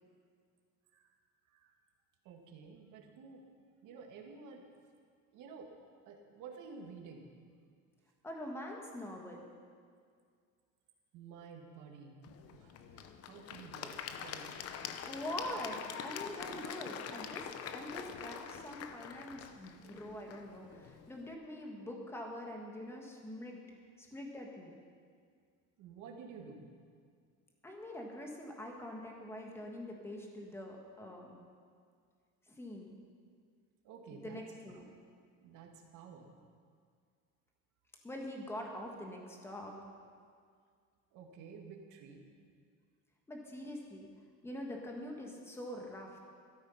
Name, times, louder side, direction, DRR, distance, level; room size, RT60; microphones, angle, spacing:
voice 1, 2.2-3.5 3.8-4.7 5.3-5.7 6.1-7.4 11.1-14.7 25.8-26.7 33.8-34.4 34.7-34.8 35.4-36.3 41.1-42.3, right 5 dB, 65° right, 2 dB, 2.0 m, -52 dB
voice 2, 8.2-9.5 13.8-13.9 15.0-23.6 24.0-24.7 27.6-31.4 32.5-33.0 34.1-34.8 38.0-39.8 43.3-44.1 44.4-46.2, left 1 dB, 5° left, 1 dB, 1.5 m, -44 dB
Applause / Crowd, 12.2-21.3, left 8 dB, 45° left, 0.8 m, -45 dB
13.0 x 12.5 x 5.7 m, 2.1 s
cardioid pair, 175°, 33 cm